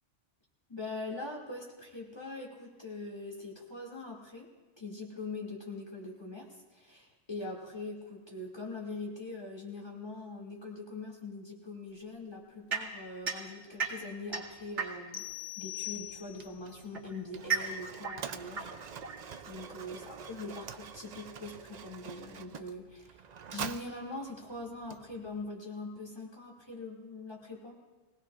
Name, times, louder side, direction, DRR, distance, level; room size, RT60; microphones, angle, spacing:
voice 1, 0.7-4.5 4.8-15.2 15.6-18.7 19.5-23.2 23.5-27.8, left 2 dB, 20° left, -2 dB, 2.5 m, -42 dB
sound 1, 12.7-15.3 16.3-19.7, right 5 dB, 70° right, 2.2 m, -37 dB
sound 2, 15.1-16.7, left 16 dB, 45° left, 0.7 m, -41 dB
Mechanisms, 15.8-25.5, right 7 dB, 55° right, 0.5 m, -46 dB
23.0 x 18.0 x 2.5 m, 1.2 s
omnidirectional pair, 1.2 m